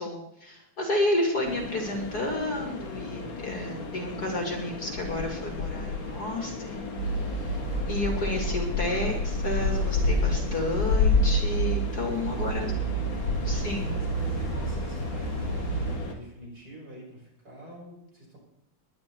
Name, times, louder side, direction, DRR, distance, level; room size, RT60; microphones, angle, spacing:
voice 1, 0.0-7.6 7.9-12.7 13.4-13.9, left 1 dB, 45° left, 2 dB, 2.9 m, -31 dB
sound 1, 1.4-16.1, left 3 dB, 65° left, 2.8 m, -31 dB
sound 2, 7.0-16.0, right 2 dB, 75° right, 3.8 m, -31 dB
voice 2, 12.2-12.9 13.4-18.4, equal, 45° right, -5 dB, 8.3 m, -46 dB
21.0 x 10.5 x 4.6 m, 0.84 s
omnidirectional pair, 2.4 m